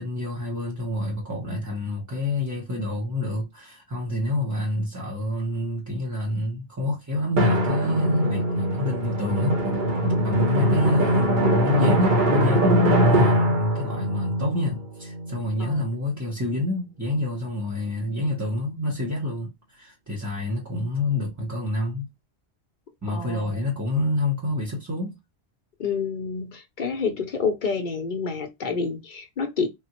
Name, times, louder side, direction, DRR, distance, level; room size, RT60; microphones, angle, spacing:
voice 1, 0.0-9.6 10.2-22.1 23.0-25.2, left 2 dB, 20° right, 0.6 m, -28 dB
Drum, 7.4-15.6, right 1 dB, 50° right, 0.9 m, -22 dB
voice 2, 23.1-23.6 25.8-29.7, left 5 dB, 55° left, 0.6 m, -28 dB
3.5 x 2.0 x 2.8 m
omnidirectional pair, 1.1 m